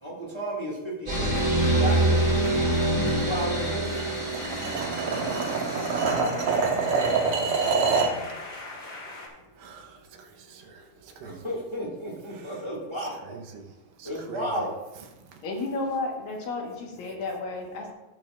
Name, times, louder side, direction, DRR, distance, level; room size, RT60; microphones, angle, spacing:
voice 1, 0.0-2.3 2.9-3.9 11.2-13.1 14.0-14.7, equal, 15° left, -4 dB, 0.9 m, -33 dB
sound 1, 1.1-9.3, left 2 dB, 50° left, 1.6 m, -40 dB
sound 2, 1.1-6.1, right 1 dB, 15° right, 1.7 m, -25 dB
sound 3, 3.8-8.2, right 4 dB, 65° right, 1.5 m, -26 dB
voice 2, 9.6-10.0 10.4-10.8 11.2-11.5 12.3-12.4 13.3-13.7 14.0-14.7, right 4 dB, 80° right, 4 dB, 2.6 m, -44 dB
voice 3, 15.4-17.9, left 3 dB, 75° left, 0 dB, 3.1 m, -32 dB
17.5 x 6.2 x 2.5 m, 1.0 s
omnidirectional pair, 4.1 m